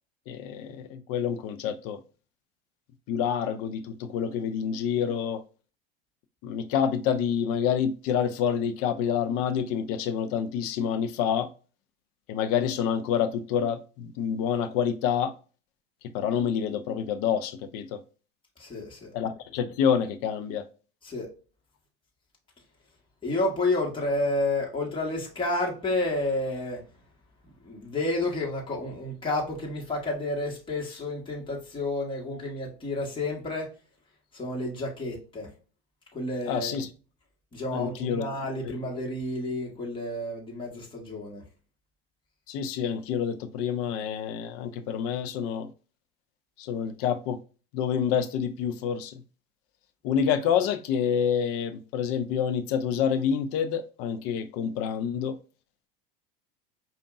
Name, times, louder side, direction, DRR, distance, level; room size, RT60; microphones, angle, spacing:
voice 1, 0.3-2.0 3.1-5.4 6.4-11.5 12.3-15.3 16.1-18.0 19.1-20.6 36.5-36.9 37.7-38.3 38.6-38.8 42.5-45.7 46.6-47.4 47.7-49.2 50.0-55.4, left 8 dB, 50° left, 0.6 m, -28 dB
voice 2, 18.6-19.1 21.0-21.3 23.2-26.8 27.6-33.7 34.3-35.5 36.1-36.8 37.5-41.4, left 2 dB, 15° left, 1.7 m, -30 dB
5.1 x 2.5 x 2.5 m
hypercardioid pair, 90°, 30 cm